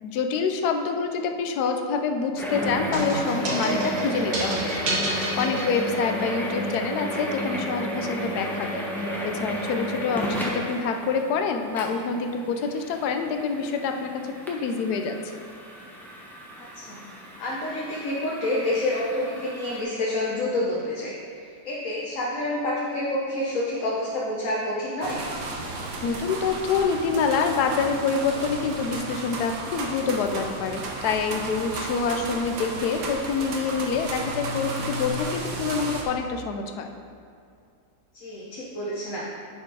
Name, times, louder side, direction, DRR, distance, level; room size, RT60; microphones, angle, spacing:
voice 1, 0.0-4.8 5.0-8.8 9.2-15.2 26.0-36.9, left 5 dB, 75° left, 5 dB, 1.2 m, -26 dB
sound 1, 2.4-19.8, equal, ahead, 0.8 m, -33 dB
sound 2, 2.9-6.3, right 2 dB, 60° right, 1.7 m, -29 dB
voice 2, 16.6-17.0 17.4-25.2 31.9-32.1 38.1-39.2, left 1 dB, 55° left, -5 dB, 1.3 m, -28 dB
sound 3, 25.0-36.0, right 2 dB, 80° right, 1.5 m, -33 dB
10.0 x 4.5 x 4.7 m, 2.3 s
omnidirectional pair, 1.8 m